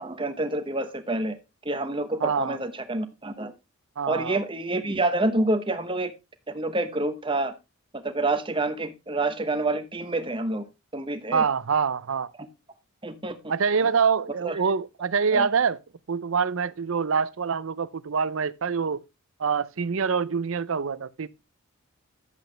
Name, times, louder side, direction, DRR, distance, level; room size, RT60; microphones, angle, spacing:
voice 1, 0.0-1.4 1.6-3.5 4.0-6.1 6.5-7.5 8.0-10.6 10.9-11.4 12.4-12.5 13.0-13.4 14.4-14.6 15.3-15.5, right 2 dB, 25° right, 1.0 m, -27 dB
voice 2, 2.2-2.6 4.0-4.4 11.3-12.3 13.5-15.8 16.1-19.0 19.4-21.3, right 6 dB, 70° right, 0.6 m, -25 dB
10.5 x 8.0 x 3.2 m
head